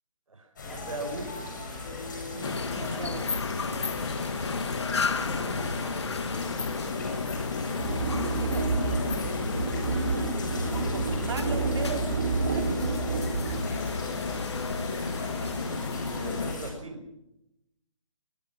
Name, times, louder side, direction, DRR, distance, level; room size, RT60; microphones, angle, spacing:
voice 1, 0.3-1.5 5.1-5.8 13.2-14.5 16.1-17.0, right 2 dB, 75° right, 3 dB, 5.2 m, -41 dB
sound 1, 0.6-16.7, left 3 dB, 35° left, 7.7 m, -38 dB
voice 2, 2.3-3.3 8.0-8.7 10.5-12.9, right 4 dB, 55° right, 5 dB, 2.9 m, -38 dB
sound 2, 2.4-16.5, left 4 dB, 55° left, 1.7 m, -32 dB
sound 3, 7.8-13.6, right 4 dB, 30° right, 2.3 m, -30 dB
22.5 x 22.0 x 6.1 m, 0.89 s
hypercardioid pair, 175°, 17 cm